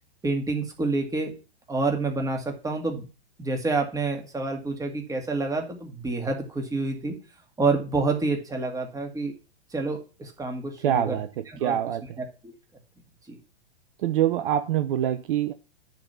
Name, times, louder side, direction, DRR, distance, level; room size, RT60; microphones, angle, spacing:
voice 1, 0.2-1.3 1.7-3.1 3.4-7.2 7.6-9.3 9.7-11.2 11.5-11.8 12.4-12.5 13.3-13.4, right 3 dB, 10° right, 2.2 m, -28 dB
voice 2, 10.8-12.2 14.0-15.5, right 11 dB, 55° right, 0.9 m, -25 dB
10.5 x 4.0 x 7.0 m
hypercardioid pair, 115°, 32 cm